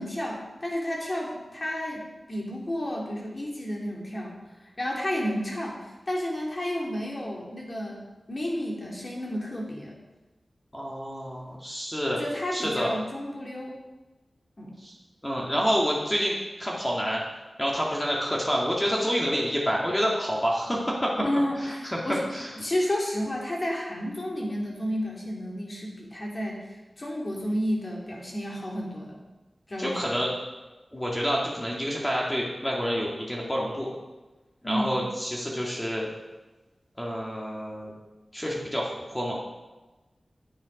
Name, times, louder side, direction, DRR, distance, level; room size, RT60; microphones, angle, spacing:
voice 1, 0.0-10.0 12.2-13.8 14.6-14.7 21.2-22.3 22.6-29.2 29.7-30.0 34.6-35.0, equal, 40° left, -2 dB, 2.9 m, -31 dB
voice 2, 10.7-12.2 12.5-12.9 14.8-14.9 15.2-17.2 17.6-21.1 21.8-22.0 22.3-22.5 29.8-30.3 30.9-33.9 34.6-36.1 37.0-37.9 38.3-39.4, equal, 15° left, -3 dB, 2.1 m, -28 dB
9.8 x 9.1 x 5.2 m, 1.1 s
wide cardioid pair, 75°, 0 cm